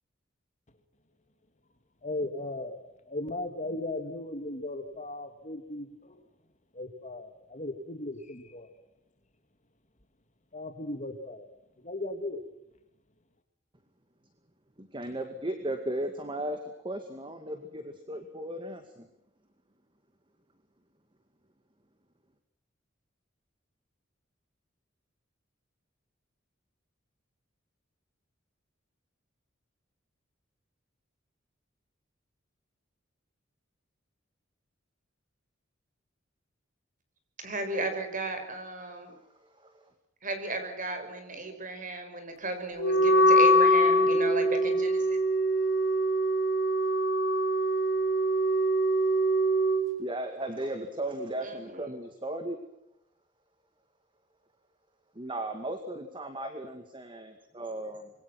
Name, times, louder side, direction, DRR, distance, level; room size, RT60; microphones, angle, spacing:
voice 1, 2.0-2.8 3.1-5.9 6.8-8.7 10.5-11.4 11.8-12.4, left 2 dB, 40° left, 2.6 m, -36 dB
voice 2, 14.8-16.6 16.8-19.1 39.1-39.8 50.0-52.6 55.2-58.1, right 1 dB, 25° right, 2.2 m, -36 dB
voice 3, 37.4-39.1 40.2-45.2 51.4-51.8, right 2 dB, 45° right, 5.6 m, -35 dB
Wind instrument woodwind instrument, 42.8-49.8, equal, 85° left, 5.9 m, -23 dB
26.5 x 22.5 x 6.1 m
head